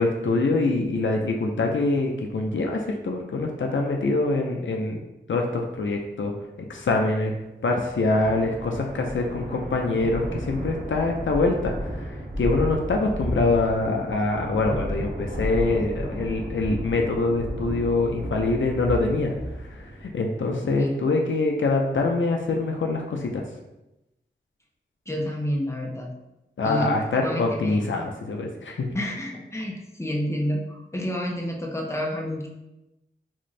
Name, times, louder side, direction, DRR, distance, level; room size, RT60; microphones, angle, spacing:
voice 1, 0.0-5.0 5.3-6.3 6.6-7.3 7.6-23.4 26.6-28.9, left 3 dB, 80° left, 2 dB, 0.5 m, -24 dB
sound 1, 7.9-20.1, equal, 55° right, 1.0 m, -33 dB
voice 2, 25.1-26.1 26.6-27.8 28.9-32.5, equal, 15° left, -1 dB, 0.7 m, -29 dB
3.6 x 2.5 x 3.1 m, 0.94 s
wide cardioid pair, 50°, 20 cm